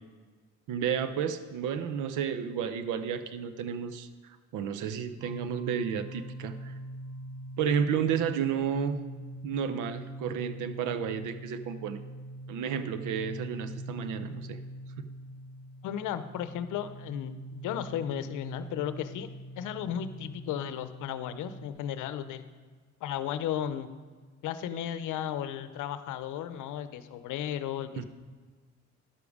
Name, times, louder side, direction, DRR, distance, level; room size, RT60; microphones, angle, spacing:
voice 1, 0.7-6.8 7.6-9.0 9.4-12.0 12.5-14.6 15.0-15.1 28.0-28.1, right 7 dB, 90° right, 11 dB, 0.7 m, -32 dB
sound 1, 5.2-21.7, right 1 dB, 10° right, 1.4 m, -43 dB
voice 2, 15.8-19.3 19.6-22.5 23.0-23.9 24.4-28.0, left 10 dB, 90° left, 12 dB, 0.7 m, -34 dB
11.0 x 7.1 x 4.8 m, 1.5 s
cardioid pair, 90°, 30 cm